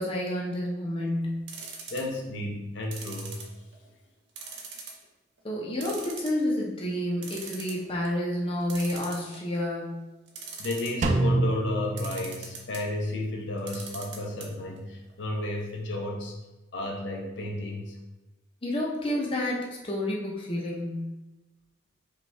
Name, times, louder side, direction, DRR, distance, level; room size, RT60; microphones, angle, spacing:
voice 1, 0.0-1.4 5.4-10.0 18.6-21.1, left 1 dB, 30° left, -3 dB, 0.6 m, -30 dB
sound 1, 1.5-2.2 2.9-3.9 4.4-5.0 5.4-5.5 5.8-6.6 7.0-7.1 7.2-7.8 8.7-9.6 10.3-11.1 12.0-12.8 13.6-14.5 14.8-14.9 15.1-15.2, right 5 dB, 70° right, 0.7 m, -40 dB
voice 2, 1.9-3.4 10.6-16.3 16.7-18.0, left 2 dB, 75° left, 0 dB, 0.7 m, -33 dB
Drum, 11.0-12.9, right 2 dB, 40° right, 0.3 m, -27 dB
5.2 x 2.4 x 3.2 m, 1.1 s
head